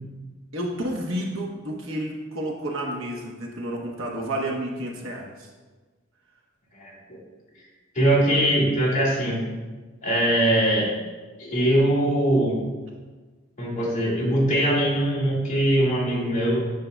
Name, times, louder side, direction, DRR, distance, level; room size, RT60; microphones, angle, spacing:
voice 1, 0.5-5.5, right 1 dB, 90° right, -1 dB, 1.1 m, -30 dB
voice 2, 7.9-9.4 10.0-10.9 11.4-12.6 13.6-16.6, right 1 dB, 35° left, -6 dB, 1.9 m, -21 dB
8.6 x 5.1 x 2.3 m, 1.3 s
head